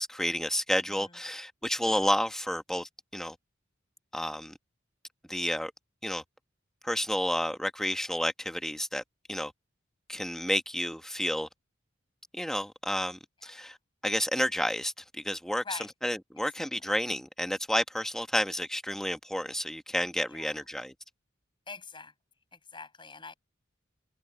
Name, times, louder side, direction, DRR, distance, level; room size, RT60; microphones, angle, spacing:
voice 1, 0.0-3.4 4.1-4.5 5.3-5.7 6.0-6.2 6.8-9.0 9.3-9.5 10.1-11.5 12.3-13.8 14.0-20.9, equal, 5° left, 1.2 m, -31 dB
voice 2, 21.7-22.1 22.5-23.3, left 4 dB, 25° left, 6.8 m, -43 dB
head